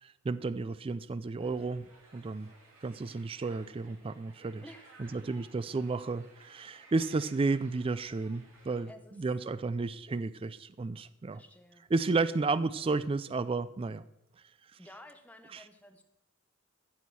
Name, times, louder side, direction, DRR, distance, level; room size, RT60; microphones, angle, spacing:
voice 1, 0.0-2.5 2.8-4.6 5.0-8.9 9.2-11.4 11.9-14.0 14.7-14.8 15.5-15.6, right 3 dB, 25° right, 15 dB, 0.3 m, -32 dB
sound 1, 1.4-8.8, right 2 dB, 70° right, 3.1 m, -58 dB
voice 2, 4.6-5.2 8.9-9.2 11.3-11.9 14.8-16.0, left 1 dB, 5° left, 6 dB, 1.0 m, -53 dB
15.0 x 6.4 x 6.1 m, 0.83 s
head